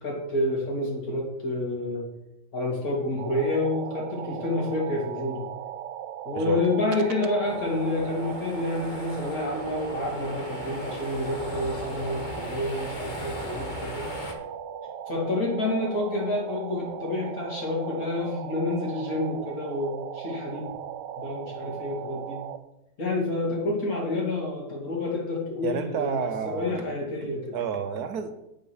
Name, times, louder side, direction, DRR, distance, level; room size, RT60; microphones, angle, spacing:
voice 1, 0.0-2.1 2.5-5.5 6.2-14.0 15.1-20.7 21.2-22.4 23.0-27.6, left 2 dB, 55° left, -3 dB, 3.0 m, -29 dB
sound 1, 3.2-22.6, right 10 dB, 90° right, 1.2 m, -38 dB
voice 2, 6.3-6.7 25.6-26.8 27.2-28.3, right 7 dB, 70° right, 8 dB, 1.2 m, -30 dB
sound 2, 7.4-14.3, left 1 dB, 30° left, 1.1 m, -38 dB
8.9 x 5.5 x 6.2 m, 0.90 s
omnidirectional pair, 1.8 m